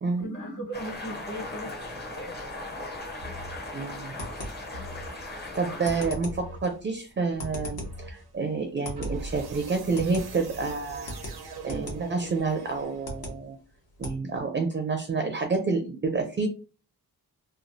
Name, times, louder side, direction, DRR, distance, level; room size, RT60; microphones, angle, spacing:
voice 1, 0.1-2.4 5.0-5.4 5.7-5.9, right 1 dB, 50° left, -3 dB, 1.4 m, -39 dB
sound 1, 0.7-6.1, left 2 dB, 25° left, 0.6 m, -38 dB
sound 2, 3.2-3.8 4.7-5.3 6.2-6.8 7.8-8.3 9.0-13.4, right 2 dB, 85° right, 0.7 m, -41 dB
sound 3, 3.7-14.2, left 1 dB, 75° left, 1.1 m, -41 dB
voice 2, 3.7-4.2 5.5-11.1 11.6-13.6 14.0-16.5, right 4 dB, 30° right, 5 dB, 0.4 m, -29 dB
3.0 x 2.3 x 2.6 m, 0.36 s
wide cardioid pair, 135°, 37 cm